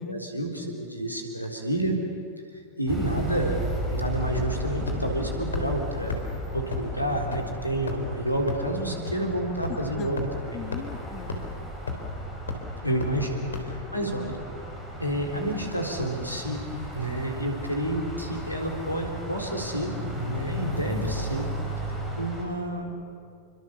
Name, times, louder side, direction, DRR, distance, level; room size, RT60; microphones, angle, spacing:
voice 1, 0.0-2.0 2.8-3.6 3.9-6.2 6.5-10.6 12.8-14.4 15.0-16.6 16.9-21.5 21.9-23.0, right 1 dB, 90° left, 2 dB, 3.9 m, -29 dB
sound 1, 2.9-22.4, equal, 5° right, 7.6 m, -35 dB
sound 2, 4.4-4.6 4.9-5.0 5.5-5.6 6.1-6.2 6.7-6.8 7.3-7.4 7.9-8.1 8.5-8.6 9.1-9.2 9.6-9.7 10.2-10.3 10.7-10.8 11.3-11.4 11.9-12.1 12.5-12.6 13.0-13.1 13.5-13.6, left 4 dB, 70° left, 3.6 m, -31 dB
voice 2, 9.4-10.1 10.5-11.8 13.2-13.3 13.9-14.1, left 9 dB, 30° left, 9 dB, 1.7 m, -40 dB
28.0 x 25.0 x 7.2 m, 2.4 s
figure-of-eight pair, 90°, 0 cm